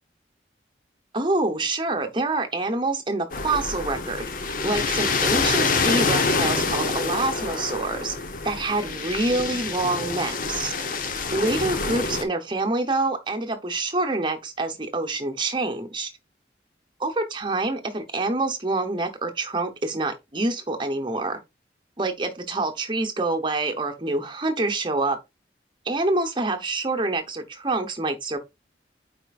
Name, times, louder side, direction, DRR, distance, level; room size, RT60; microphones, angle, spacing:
voice 1, 1.1-4.3 4.6-8.2 8.4-10.7 11.3-16.1 17.0-21.4 22.0-25.2 25.8-28.4, right 2 dB, 25° right, 0.9 m, -26 dB
sound 1, 3.3-12.2, left 4 dB, 50° left, 0.9 m, -26 dB
8.9 x 4.3 x 2.4 m
head